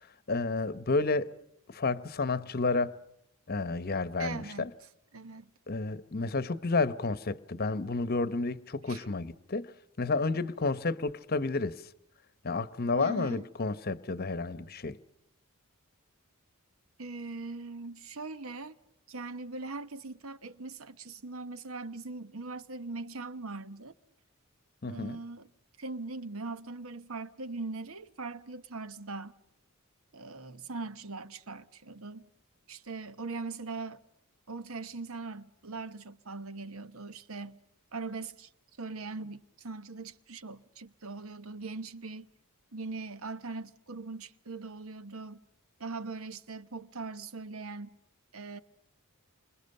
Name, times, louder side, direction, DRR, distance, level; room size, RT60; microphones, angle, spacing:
voice 1, 0.3-1.3 1.7-3.0 3.5-4.7 5.7-9.7 10.0-11.8 12.4-15.0 24.8-25.2, left 3 dB, 45° left, 0.9 m, -31 dB
voice 2, 4.2-4.7 5.1-5.5 8.9-9.0 13.0-13.4 17.0-18.8 19.1-23.9 24.9-25.5 25.8-29.3 30.1-32.3 32.7-34.0 34.5-37.6 37.9-38.5 38.8-42.3 42.7-45.4 45.8-48.0 48.3-48.6, right 3 dB, 70° right, 1.1 m, -40 dB
28.5 x 26.5 x 6.7 m
head